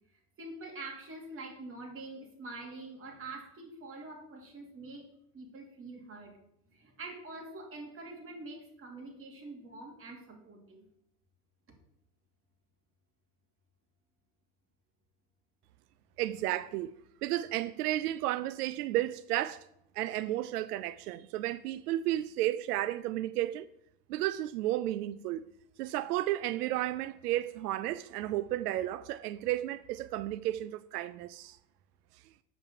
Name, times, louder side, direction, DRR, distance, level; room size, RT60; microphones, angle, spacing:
voice 1, 0.4-5.1 5.3-6.4 6.7-10.8, right 2 dB, 30° right, 2.8 m, -45 dB
voice 2, 16.2-16.9 17.2-19.7 19.9-23.7 24.1-25.5 25.8-31.6, right 14 dB, 90° right, 0.6 m, -33 dB
7.3 x 5.9 x 7.3 m
supercardioid pair, 125°, 45 cm